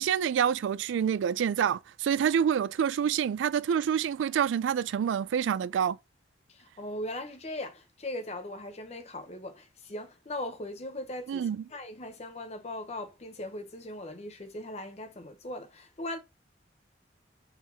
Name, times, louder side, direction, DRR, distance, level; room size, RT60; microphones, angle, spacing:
voice 1, 0.0-6.0 11.3-11.6, right 8 dB, 85° right, 0.3 m, -27 dB
voice 2, 6.5-16.2, left 1 dB, 35° left, 0.7 m, -39 dB
4.0 x 2.8 x 4.2 m
head